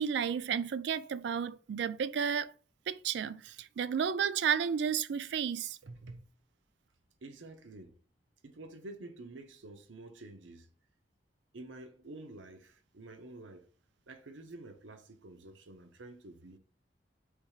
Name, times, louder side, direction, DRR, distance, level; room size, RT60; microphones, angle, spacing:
voice 1, 0.0-2.5 2.9-5.8, right 7 dB, 65° right, 0.3 m, -32 dB
voice 2, 5.8-6.3 7.2-8.0 8.4-10.7 11.5-13.7 14.1-16.6, right 2 dB, 85° right, 0.7 m, -49 dB
3.5 x 3.1 x 4.7 m
head